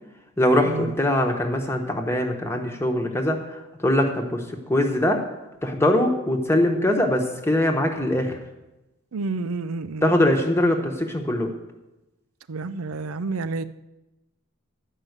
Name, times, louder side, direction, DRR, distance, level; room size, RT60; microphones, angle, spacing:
voice 1, 0.4-5.2 5.6-8.4 10.0-11.5, left 1 dB, 10° left, 3 dB, 1.1 m, -22 dB
voice 2, 9.1-10.1 12.5-13.6, right 3 dB, 85° right, 12 dB, 0.5 m, -29 dB
12.0 x 5.5 x 8.1 m, 0.99 s
head